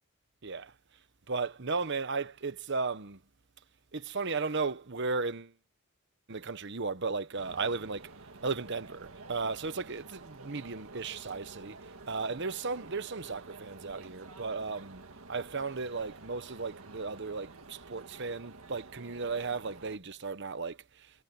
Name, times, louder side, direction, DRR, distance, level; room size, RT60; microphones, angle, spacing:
voice 1, 1.3-3.2 3.9-5.5 6.3-8.1 8.4-11.7 12.1-15.0 15.3-20.8, right 4 dB, 55° right, 1.1 m, -35 dB
sound 1, 7.4-20.0, right 3 dB, 90° right, 1.8 m, -50 dB
head